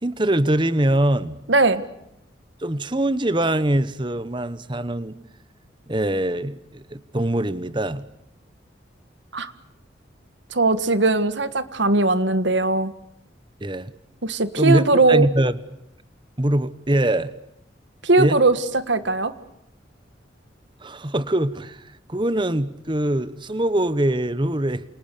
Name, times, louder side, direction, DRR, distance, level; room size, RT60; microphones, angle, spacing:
voice 1, 0.0-1.4 2.6-5.2 5.9-8.0 13.6-13.9 14.6-15.6 16.4-17.3 18.2-18.4 20.8-24.8, right 1 dB, 25° right, 15 dB, 1.1 m, -23 dB
voice 2, 1.5-1.8 9.3-9.5 10.5-12.9 14.2-15.3 18.0-19.3, right 3 dB, 75° right, 12 dB, 1.7 m, -19 dB
29.0 x 27.5 x 6.9 m, 0.81 s
head